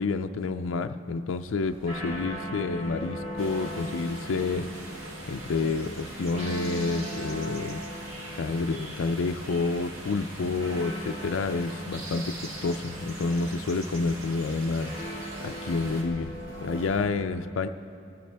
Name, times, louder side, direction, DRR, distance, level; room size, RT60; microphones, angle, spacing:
voice 1, 0.0-4.7 5.3-7.8 8.4-14.9 15.4-16.3 16.6-17.7, left 3 dB, 65° left, 7 dB, 0.4 m, -29 dB
sound 1, 1.3-17.0, equal, 35° right, 3.5 m, -40 dB
sound 2, 3.4-16.0, right 1 dB, 75° right, 1.6 m, -42 dB
23.0 x 9.2 x 3.4 m, 2.6 s
head